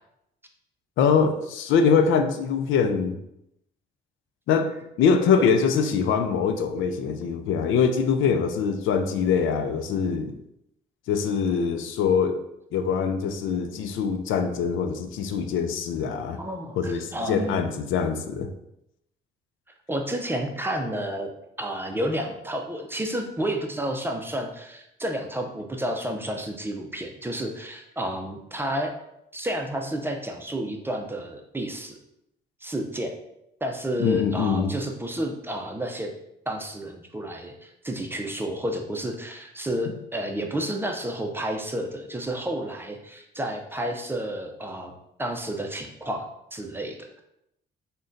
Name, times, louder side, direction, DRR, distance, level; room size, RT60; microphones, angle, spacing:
voice 1, 1.0-3.2 4.5-10.4 11.1-12.4 12.7-16.4 16.8-18.5 34.0-34.7 39.9-40.0, left 6 dB, 80° left, 7 dB, 0.4 m, -23 dB
voice 2, 16.4-17.6 19.9-21.3 21.6-28.9 29.3-32.0 32.6-33.2 33.6-36.1 36.5-44.9 45.2-46.3 46.5-47.2, right 1 dB, 10° right, 3 dB, 0.5 m, -31 dB
3.7 x 2.2 x 3.8 m, 0.82 s
cardioid pair, 90°, 20 cm